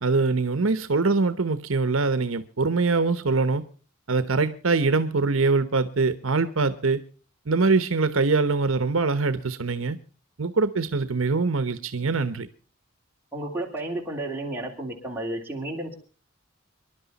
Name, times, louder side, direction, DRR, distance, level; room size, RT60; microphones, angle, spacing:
voice 1, 0.0-3.7 4.1-7.0 7.5-10.0 10.4-12.5, right 3 dB, 70° right, 1.0 m, -23 dB
voice 2, 13.3-16.0, right 1 dB, 10° right, 3.4 m, -32 dB
26.0 x 11.5 x 4.1 m
head